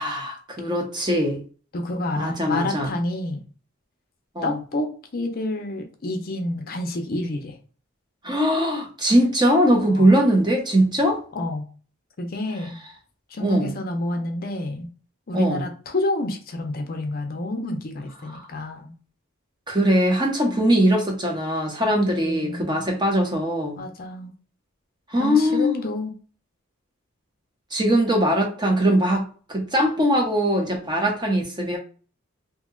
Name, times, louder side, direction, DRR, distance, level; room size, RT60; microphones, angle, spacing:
voice 1, 0.0-1.4 2.2-2.9 4.3-4.6 8.2-11.2 13.4-13.7 15.3-15.6 18.3-18.5 19.7-23.8 25.1-25.7 27.7-31.8, equal, 20° right, 1 dB, 0.8 m, -21 dB
voice 2, 1.7-3.4 4.4-7.6 9.9-10.1 11.3-11.7 12.2-12.8 13.3-14.9 15.3-18.9 22.2-22.7 23.8-24.3 25.2-26.1, left 2 dB, 45° left, 4 dB, 0.6 m, -29 dB
2.8 x 2.2 x 3.7 m, 0.40 s
head